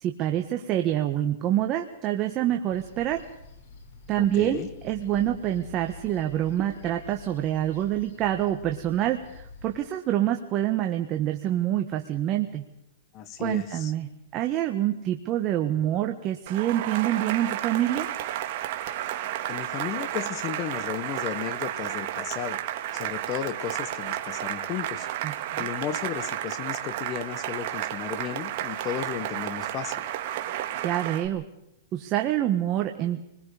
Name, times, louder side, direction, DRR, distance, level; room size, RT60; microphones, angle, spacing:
voice 1, 0.0-3.2 4.1-12.6 13.4-18.1 25.2-25.3 30.8-31.5 31.9-33.3, right 12 dB, 30° right, 5 dB, 1.4 m, -26 dB
sound 1, 2.7-9.8, left 3 dB, 65° left, 7.3 m, -47 dB
voice 2, 4.2-4.7 13.1-13.9 19.5-22.6 22.9-25.1 25.6-30.1, left 10 dB, 30° left, 14 dB, 1.5 m, -34 dB
Cheering / Applause, 16.5-31.3, right 12 dB, 50° right, 2.1 m, -32 dB
27.5 x 21.0 x 5.1 m, 0.82 s
hypercardioid pair, 150°, 0 cm